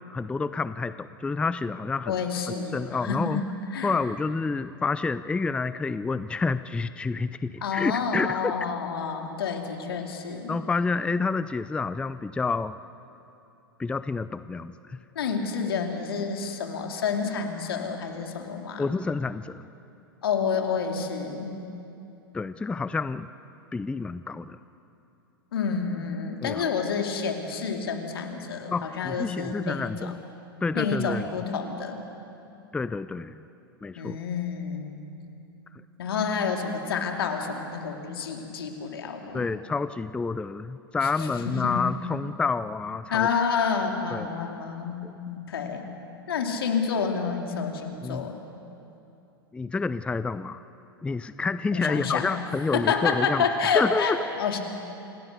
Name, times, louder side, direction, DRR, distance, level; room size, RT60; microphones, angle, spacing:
voice 1, 0.1-2.2 2.7-3.4 3.8-8.5 10.5-12.8 13.8-15.0 18.8-19.7 22.3-23.3 23.7-24.6 26.4-26.6 28.7-30.2 30.6-31.3 32.7-33.4 33.8-34.2 39.3-43.3 44.1-44.3 45.0-45.1 48.0-48.3 49.5-50.6 51.0-53.5 53.7-54.2, left 4 dB, 10° left, 14 dB, 0.4 m, -28 dB
voice 2, 2.1-3.4 3.7-3.9 7.6-10.6 15.1-18.9 20.2-21.5 25.5-30.1 30.7-32.0 34.0-35.1 36.0-39.4 41.2-41.8 43.1-45.9 46.3-48.4 51.7-52.3 52.7-54.6, left 6 dB, 75° left, 4 dB, 2.7 m, -29 dB
27.5 x 17.5 x 6.7 m, 2.7 s
hypercardioid pair, 105°, 12 cm